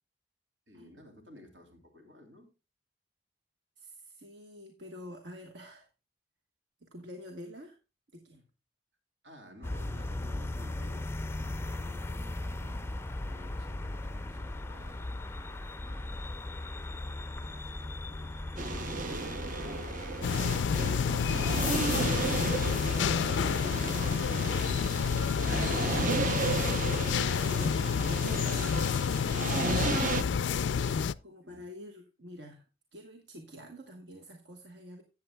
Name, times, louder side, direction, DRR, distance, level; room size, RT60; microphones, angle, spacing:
voice 1, 0.7-2.5 9.2-13.0 13.3-19.7 31.4-31.6, left 1 dB, 85° right, 3 dB, 3.0 m, -55 dB
voice 2, 3.8-5.9 6.8-7.8 8.1-8.4 27.2-27.9 28.2-32.6 32.9-35.0, left 1 dB, 70° right, 3 dB, 1.3 m, -48 dB
sound 1, 9.6-22.7, left 2 dB, 15° left, 0.4 m, -38 dB
sound 2, 18.6-30.2, right 4 dB, 45° right, 0.7 m, -34 dB
sound 3, 20.2-31.1, left 6 dB, 80° left, 0.4 m, -29 dB
14.5 x 8.7 x 2.2 m, 0.29 s
head